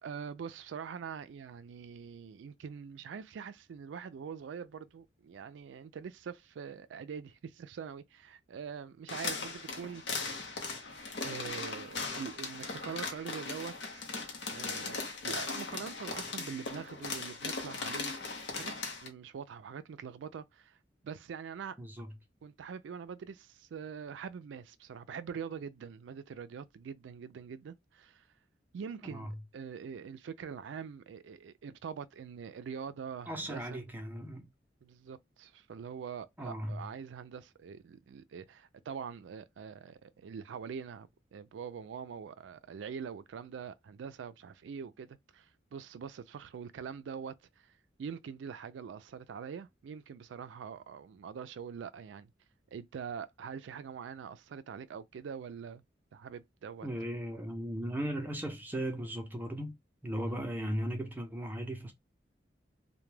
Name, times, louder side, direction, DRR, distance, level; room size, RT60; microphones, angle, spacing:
voice 1, 0.0-10.2 11.2-14.2 14.5-18.1 18.5-18.7 19.0-20.8 21.0-21.8 22.4-28.3 28.7-33.8 34.8-47.7 48.0-52.3 52.7-55.8 56.1-56.9, right 6 dB, 85° right, 0.3 m, -44 dB
sound 1, 9.1-19.1, left 4 dB, 70° left, 0.7 m, -38 dB
voice 2, 21.8-22.1 29.1-29.3 33.3-34.5 36.4-36.8 56.8-59.8 60.0-61.9, right 1 dB, 10° right, 0.5 m, -37 dB
2.2 x 2.1 x 3.2 m
head